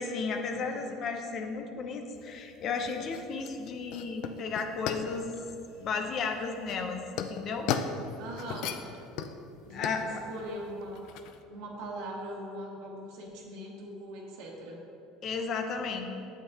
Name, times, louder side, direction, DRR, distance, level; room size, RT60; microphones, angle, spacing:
voice 1, 0.0-5.3 5.8-7.7 9.7-10.2 15.2-16.1, left 4 dB, 50° left, 5 dB, 0.8 m, -34 dB
voice 2, 0.5-0.9 8.2-8.7 9.7-11.0 11.5-14.8, right 1 dB, 70° right, -1 dB, 1.5 m, -41 dB
sound 1, 2.1-11.4, left 7 dB, 70° left, 0.4 m, -38 dB
8.3 x 7.4 x 2.9 m, 2.8 s
supercardioid pair, 90°, 0 cm